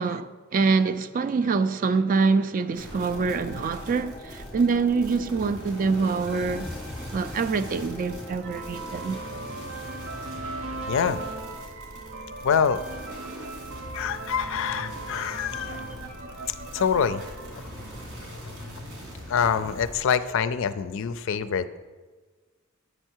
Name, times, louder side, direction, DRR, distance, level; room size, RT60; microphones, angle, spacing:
voice 1, 0.0-6.7 7.1-9.2, right 4 dB, 40° right, 0.3 m, -25 dB
sound 1, 2.7-20.0, equal, 85° right, 2.3 m, -42 dB
sound 2, 3.0-8.4, left 1 dB, ahead, 0.6 m, -41 dB
sound 3, 6.9-18.6, right 3 dB, 65° right, 0.7 m, -39 dB
voice 2, 10.9-11.2 12.4-12.8 13.9-15.8 16.3-17.2 17.5-17.6 19.3-21.8, left 7 dB, 65° left, 0.4 m, -26 dB
7.9 x 5.5 x 4.5 m
head